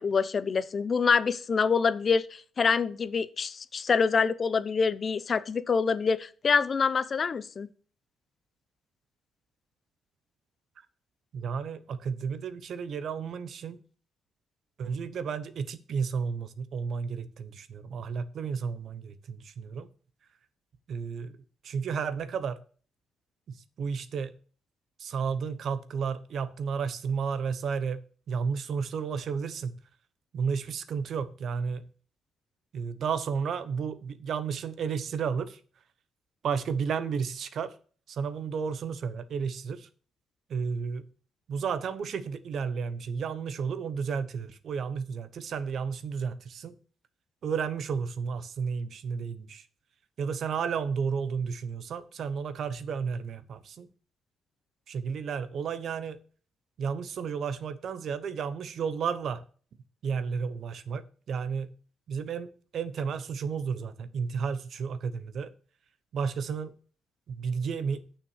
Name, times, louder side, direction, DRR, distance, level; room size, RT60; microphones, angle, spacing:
voice 1, 0.0-7.7, left 5 dB, 40° left, 0.6 m, -26 dB
voice 2, 11.3-13.8 14.8-19.9 20.9-21.4 21.6-22.6 23.5-24.3 25.0-29.8 30.3-31.9 32.7-35.6 36.4-37.8 38.1-39.9 40.5-41.1 41.5-46.7 47.4-49.7 50.2-53.9 54.9-56.2 56.8-59.4 60.0-61.7 62.1-65.5 66.1-66.7 67.3-68.1, right 6 dB, 60° right, 0.9 m, -32 dB
6.8 x 5.8 x 7.1 m
cardioid pair, 90°, 0 cm